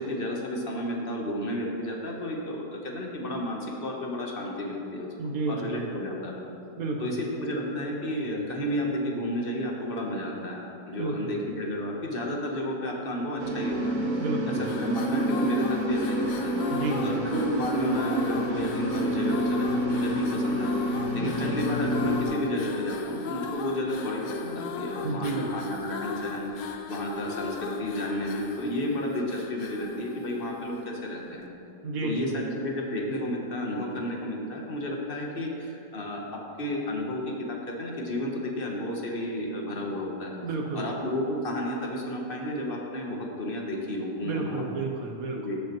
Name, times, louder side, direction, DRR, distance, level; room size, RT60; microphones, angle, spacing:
voice 1, 0.0-6.5 7.0-14.2 14.6-16.6 17.0-20.7 21.1-31.5 32.0-40.4 40.7-44.6 45.3-45.6, left 1 dB, 40° left, -1 dB, 1.0 m, -32 dB
voice 2, 5.2-5.9 6.8-7.2 11.0-11.4 14.2-14.8 16.7-17.3 21.1-21.5 25.0-25.5 31.8-32.5 40.4-40.9 44.2-45.4, right 3 dB, 70° right, 2 dB, 1.2 m, -31 dB
sound 1, 13.4-22.2, right 1 dB, 40° right, 0.7 m, -29 dB
sound 2, 14.5-31.0, left 5 dB, 90° left, 1.1 m, -37 dB
14.0 x 5.5 x 3.0 m, 2.6 s
omnidirectional pair, 1.6 m